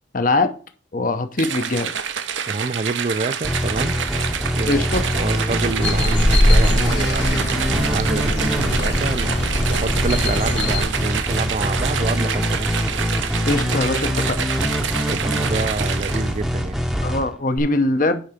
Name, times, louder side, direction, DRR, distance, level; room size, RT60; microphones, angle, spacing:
voice 1, 0.1-0.5 0.9-1.9 4.7-5.1 13.5-14.4 17.0-18.2, left 2 dB, 45° left, 0.8 m, -21 dB
sound 1, 1.4-16.5, right 7 dB, 85° right, 0.8 m, -27 dB
voice 2, 2.5-4.0 4.5-4.9 5.1-9.3 9.7-12.7 15.1-16.8, right 3 dB, 35° right, 0.4 m, -27 dB
sound 2, 3.4-17.6, equal, ahead, 0.7 m, -24 dB
sound 3, 5.8-10.8, left 1 dB, 70° left, 1.6 m, -21 dB
10.0 x 3.9 x 5.0 m
head